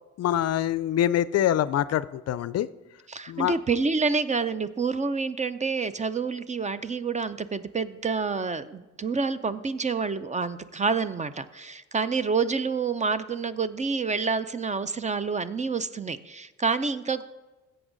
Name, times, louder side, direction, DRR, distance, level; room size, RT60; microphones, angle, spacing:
voice 1, 0.2-2.7 3.3-3.6, left 11 dB, 55° left, 17 dB, 0.4 m, -25 dB
voice 2, 3.1-17.2, right 4 dB, 25° right, 14 dB, 0.5 m, -28 dB
14.0 x 8.0 x 3.9 m, 1.1 s
cardioid pair, 90°, 30 cm